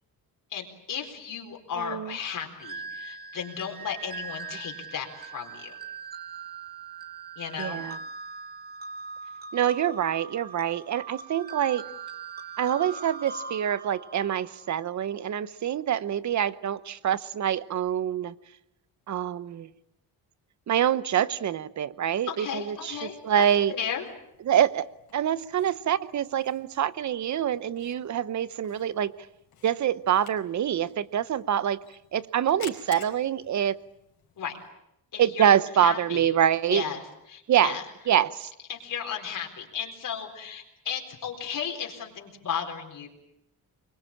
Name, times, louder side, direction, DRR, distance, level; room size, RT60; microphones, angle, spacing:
voice 1, 0.5-5.7 7.4-7.8 22.3-24.0 34.4-34.6 35.1-36.3 36.7-37.0 37.3-37.8 38.7-43.1, left 8 dB, 60° left, 1 dB, 4.2 m, -35 dB
voice 2, 1.8-2.1 7.6-8.0 9.5-11.9 12.6-18.3 19.1-19.7 20.7-23.7 24.5-24.9 25.1-29.2 29.6-31.8 32.1-33.8 35.2-36.8 37.5-37.8 38.1-38.5, right 10 dB, 50° right, 17 dB, 0.9 m, -25 dB
sound 1, 2.6-15.0, right 4 dB, 25° right, 1.9 m, -41 dB
Camera, 22.7-34.7, left 10 dB, 75° left, 4.7 m, -53 dB
25.5 x 23.5 x 8.7 m, 0.81 s
wide cardioid pair, 160°, 37 cm